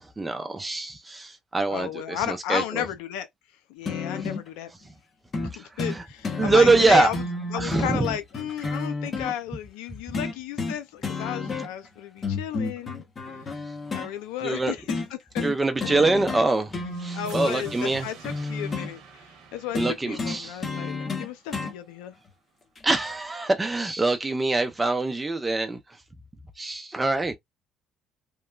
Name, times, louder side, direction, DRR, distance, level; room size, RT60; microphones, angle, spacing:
voice 1, 0.0-2.8 5.4-6.0 6.4-7.1 7.5-8.1 14.4-14.7 15.4-18.1 19.7-20.6 22.8-26.0 26.6-27.4, right 3 dB, 20° right, 0.5 m, -24 dB
voice 2, 1.7-3.3 3.7-4.7 5.6-7.2 7.5-13.0 13.9-15.4 17.1-19.3 19.5-22.2, left 11 dB, 85° left, 0.4 m, -33 dB
sound 1, 3.9-4.5 5.3-5.5 5.8-6.0 6.2-9.3 10.1-10.8 11.0-11.9 12.2-14.1 14.9-15.1 15.4-15.6 15.8-16.5 16.7-18.9 19.7-21.7 22.8-22.9, left 3 dB, 40° left, 1.0 m, -31 dB
sound 2, 16.8-21.8, right 5 dB, 75° right, 0.7 m, -48 dB
3.0 x 2.1 x 2.2 m
supercardioid pair, 65°, 0 cm